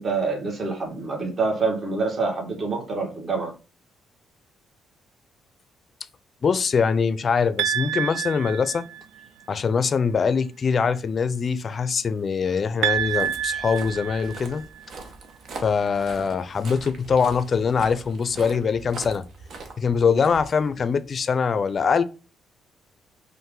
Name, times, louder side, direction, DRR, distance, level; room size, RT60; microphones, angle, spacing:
voice 1, 0.0-3.5, right 4 dB, 40° right, 1.8 m, -26 dB
voice 2, 6.4-8.9 9.5-14.7 15.6-19.2 19.8-22.0, left 5 dB, 45° left, 0.5 m, -23 dB
sound 1, 7.6-9.2 12.8-14.8, right 10 dB, 90° right, 0.3 m, -28 dB
Walk footsteps, 12.8-21.1, right 3 dB, 60° right, 1.1 m, -42 dB
5.5 x 2.6 x 3.8 m
cardioid pair, 90°, 0 cm